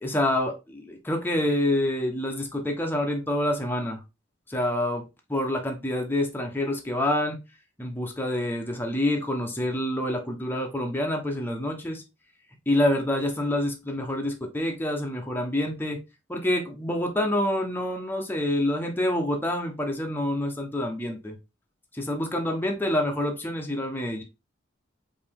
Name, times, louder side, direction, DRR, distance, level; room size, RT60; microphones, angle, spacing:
voice 1, 0.0-4.0 4.5-5.0 5.3-7.4 7.8-12.0 12.7-16.0 16.3-21.4 21.9-24.2, left 1 dB, 10° left, 2 dB, 0.8 m, -27 dB
4.9 x 2.8 x 3.5 m, 0.26 s
head